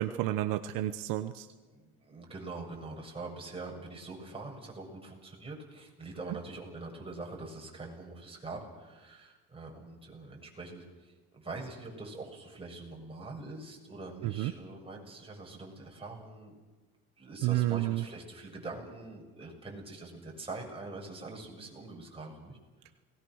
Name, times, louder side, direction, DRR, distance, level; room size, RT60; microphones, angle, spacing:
voice 1, 0.0-1.5 14.2-14.5 17.4-18.0, right 15 dB, 70° right, 9 dB, 1.1 m, -30 dB
voice 2, 1.7-16.5 17.2-22.6, right 3 dB, 15° right, 0 dB, 7.3 m, -44 dB
29.0 x 20.0 x 6.5 m, 1.3 s
supercardioid pair, 100°, 34 cm